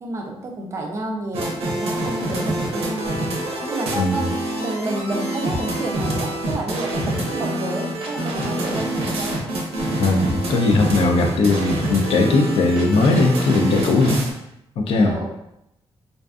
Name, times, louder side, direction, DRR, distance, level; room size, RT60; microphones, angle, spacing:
voice 1, 0.0-3.2 3.7-9.4 14.9-15.3, right 2 dB, 30° right, 1 dB, 0.4 m, -30 dB
sound 1, 1.3-14.3, right 1 dB, 85° right, 0.6 m, -26 dB
voice 2, 4.0-4.3 10.0-14.2 14.8-15.2, left 3 dB, 65° left, 3 dB, 0.4 m, -19 dB
2.5 x 2.4 x 2.3 m, 0.81 s
wide cardioid pair, 165°, 10 cm